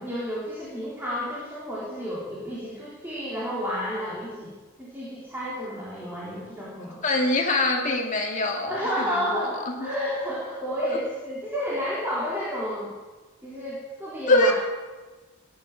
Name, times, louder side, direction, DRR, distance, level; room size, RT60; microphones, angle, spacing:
voice 1, 0.0-4.5 4.8-7.0 8.7-12.9 13.4-14.5, equal, 10° right, -8 dB, 3.5 m, -31 dB
voice 2, 7.0-9.5 9.8-9.9 10.8-10.9 14.3-14.5, left 2 dB, 35° left, 1 dB, 2.6 m, -24 dB
17.0 x 11.0 x 7.3 m, 1.2 s
head